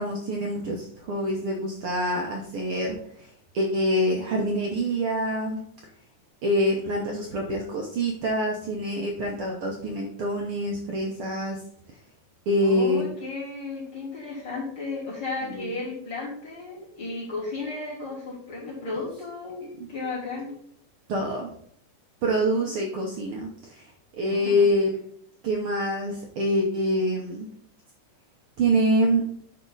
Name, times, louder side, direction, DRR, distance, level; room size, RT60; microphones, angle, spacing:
voice 1, 0.0-3.3 3.5-5.6 6.4-11.6 12.5-13.0 15.6-15.7 21.1-21.5 22.2-23.9 24.2-25.1 25.4-27.5 28.6-29.2, equal, 75° right, 0 dB, 1.2 m, -25 dB
voice 2, 6.8-7.6 12.6-20.5 22.6-22.8 24.2-24.7, left 3 dB, 35° left, -7 dB, 3.7 m, -34 dB
10.0 x 4.2 x 3.9 m, 0.67 s
omnidirectional pair, 3.6 m